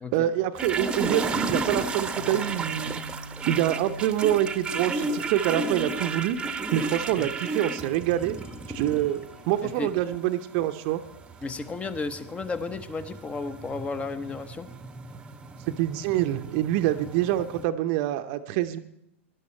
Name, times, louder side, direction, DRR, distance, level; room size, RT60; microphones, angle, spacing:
voice 1, 0.1-3.0 3.5-6.4 6.7-8.4 8.7-9.2 9.5-11.0 15.7-18.8, right 13 dB, 45° right, 9 dB, 0.8 m, -26 dB
sound 1, 0.6-17.6, right 3 dB, 15° right, 1.0 m, -33 dB
sound 2, 1.5-7.3 7.6-11.0, right 1 dB, 70° left, 6.4 m, -45 dB
voice 2, 9.6-9.9 11.4-14.7, left 4 dB, 15° left, 13 dB, 0.9 m, -33 dB
18.0 x 11.5 x 4.4 m, 0.79 s
hypercardioid pair, 105°, 7 cm